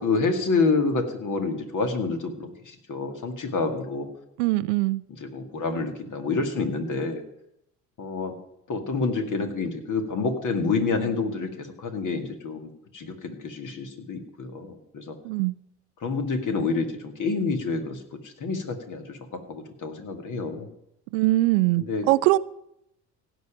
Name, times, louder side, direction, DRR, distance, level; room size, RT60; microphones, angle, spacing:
voice 1, 0.0-4.1 5.1-7.2 8.0-8.4 8.7-15.2 16.0-19.2 19.5-20.7 21.8-22.1, left 4 dB, 45° left, 6 dB, 2.2 m, -28 dB
voice 2, 4.4-5.0 15.2-15.5 21.1-22.4, right 19 dB, 70° right, 17 dB, 0.6 m, -22 dB
16.0 x 5.5 x 9.0 m, 0.80 s
hypercardioid pair, 60°, 44 cm